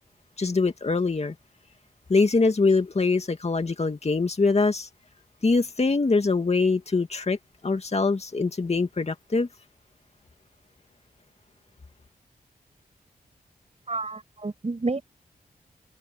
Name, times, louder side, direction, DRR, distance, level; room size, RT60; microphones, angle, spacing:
voice 1, 0.4-1.3 2.1-4.9 5.4-7.4 7.6-9.5, left 3 dB, 40° left, 2.2 m, -23 dB
voice 2, 13.9-15.0, right 3 dB, 40° right, 6.6 m, -30 dB
cardioid pair, 60°, 16 cm